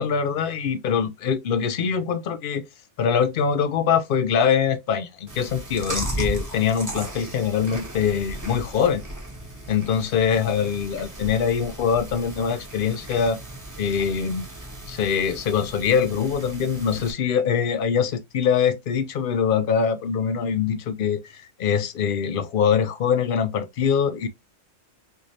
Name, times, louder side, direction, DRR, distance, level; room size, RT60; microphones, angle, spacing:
voice 1, 0.0-2.6 3.0-9.0 9.7-13.4 13.8-14.5 14.9-24.3, left 7 dB, 60° left, 0.6 m, -23 dB
Chewing mastication, 5.3-17.1, right 1 dB, 20° right, 0.9 m, -36 dB
3.3 x 3.1 x 2.6 m
omnidirectional pair, 1.2 m